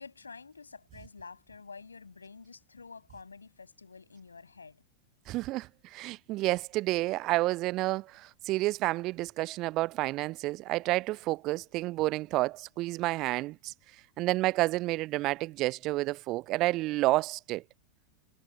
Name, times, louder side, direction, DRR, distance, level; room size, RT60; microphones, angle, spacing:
voice 1, 0.0-4.8, left 4 dB, 75° left, 7.8 m, -49 dB
voice 2, 5.3-13.7 14.2-17.6, right 19 dB, 40° right, 0.6 m, -30 dB
figure-of-eight pair, 90°, 0 cm